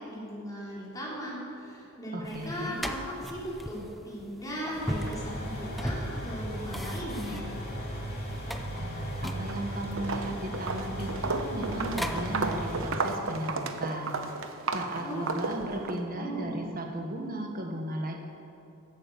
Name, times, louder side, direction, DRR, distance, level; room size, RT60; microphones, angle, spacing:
voice 1, 0.1-7.4 15.0-15.5 16.2-16.6, equal, 15° left, -7 dB, 3.9 m, -37 dB
voice 2, 2.1-2.8 8.7-14.3 14.7-18.1, right 1 dB, 40° right, 2 dB, 1.6 m, -36 dB
sound 1, 2.3-12.7, equal, ahead, 0.6 m, -40 dB
sound 2, 4.8-12.8, equal, 45° left, 3.0 m, -37 dB
Walk footsteps, 9.3-9.7 10.0-16.0, right 3 dB, 65° right, 1.0 m, -33 dB
15.0 x 9.2 x 6.8 m, 2.8 s
head